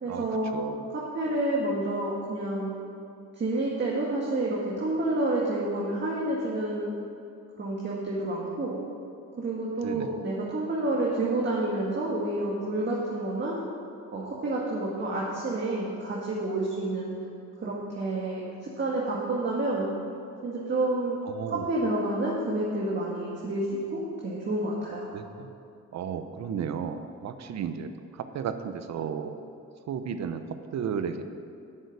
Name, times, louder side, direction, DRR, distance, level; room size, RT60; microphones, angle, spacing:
voice 1, 0.0-0.6 0.9-2.7 3.4-6.9 7.6-8.8 9.4-13.6 14.1-17.1 17.6-19.9 20.4-21.2 21.5-25.1, right 2 dB, 35° right, -5 dB, 1.9 m, -29 dB
voice 2, 0.5-0.9 9.8-10.1 21.3-21.6 25.1-25.5 25.9-29.5 29.9-30.4 30.7-31.2, right 7 dB, 65° right, 9 dB, 0.8 m, -34 dB
9.0 x 6.7 x 8.1 m, 2.6 s
cardioid pair, 90°, 30 cm